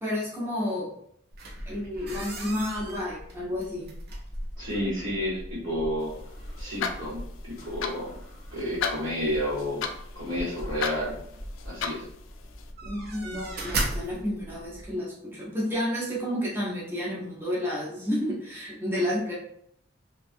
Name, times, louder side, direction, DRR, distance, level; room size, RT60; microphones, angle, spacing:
voice 1, 0.0-0.9 1.7-3.9 12.8-19.3, left 1 dB, 10° right, -6 dB, 0.7 m, -31 dB
sound 1, 1.3-14.9, right 1 dB, 55° right, 0.5 m, -38 dB
voice 2, 4.6-6.1 6.6-8.2 8.5-9.8 10.1-11.2 11.6-12.0, equal, 80° right, -7 dB, 1.5 m, -30 dB
sound 2, 6.0-12.7, left 6 dB, 75° left, 0.3 m, -37 dB
2.5 x 2.3 x 2.5 m, 0.69 s
head